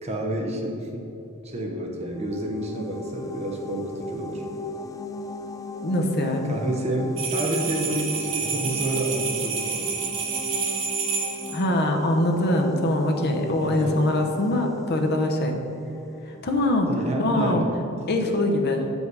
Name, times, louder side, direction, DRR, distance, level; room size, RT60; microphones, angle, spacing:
voice 1, 0.0-1.0 1.4-4.4 6.5-9.9 13.6-14.0 16.9-17.7 18.1-18.4, right 1 dB, 30° right, -1 dB, 0.9 m, -29 dB
sound 1, 2.0-16.7, left 2 dB, 15° left, 0.3 m, -37 dB
voice 2, 5.8-6.5 11.5-15.5 16.3-16.9 17.2-17.6 18.1-18.8, left 1 dB, 50° left, 3 dB, 0.8 m, -23 dB
sound 2, 7.2-11.6, right 6 dB, 65° right, 1.0 m, -29 dB
7.6 x 5.5 x 4.7 m, 2.8 s
head